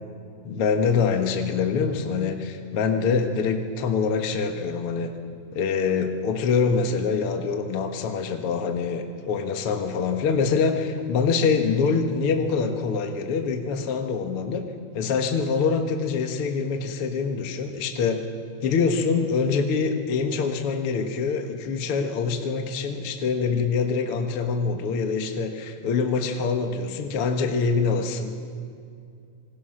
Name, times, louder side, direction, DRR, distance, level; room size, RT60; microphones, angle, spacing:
voice 1, 0.4-5.1 5.5-14.7 14.9-18.2 18.6-28.3, left 5 dB, 55° left, 5 dB, 2.1 m, -25 dB
26.5 x 21.0 x 6.4 m, 2.4 s
omnidirectional pair, 3.5 m